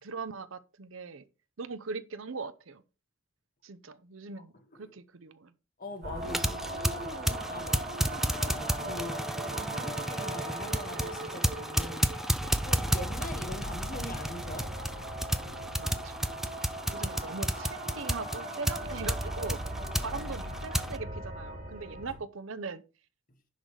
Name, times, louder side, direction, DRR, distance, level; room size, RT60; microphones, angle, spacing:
voice 1, 0.0-1.2 1.6-2.8 3.6-4.5 4.8-5.5 15.8-16.2 16.9-19.6 20.0-22.8, right 4 dB, 70° right, 0.7 m, -40 dB
voice 2, 5.8-7.9 8.8-12.1 12.6-14.7 22.0-22.1, left 1 dB, 40° left, 1.4 m, -42 dB
sound 1, 6.0-22.2, right 1 dB, 50° right, 3.7 m, -39 dB
sound 2, 6.2-21.0, equal, ahead, 0.4 m, -33 dB
10.5 x 3.9 x 4.7 m
head